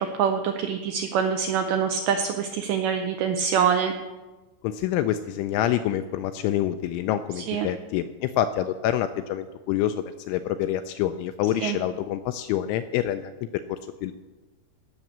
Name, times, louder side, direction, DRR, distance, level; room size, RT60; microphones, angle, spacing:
voice 1, 0.0-3.9 7.4-7.7 11.6-11.8, right 7 dB, 85° right, 5 dB, 2.5 m, -25 dB
voice 2, 4.6-13.3 13.7-14.1, left 11 dB, 85° left, 9 dB, 2.8 m, -27 dB
17.0 x 6.7 x 7.2 m, 1.2 s
omnidirectional pair, 5.9 m